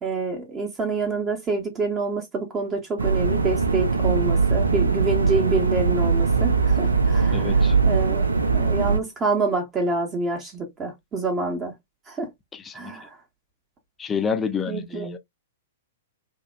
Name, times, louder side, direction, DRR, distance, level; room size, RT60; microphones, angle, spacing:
voice 1, 0.0-7.5 7.9-8.2 8.5-11.7 12.1-12.3 12.7-13.2 14.7-15.1, right 3 dB, 20° right, 0.7 m, -27 dB
sound 1, 3.0-9.0, right 4 dB, 80° right, 0.4 m, -21 dB
voice 2, 7.3-7.8 12.5-13.0 14.0-15.2, left 6 dB, 15° left, 0.4 m, -28 dB
2.8 x 2.0 x 2.3 m
figure-of-eight pair, 110°, 0 cm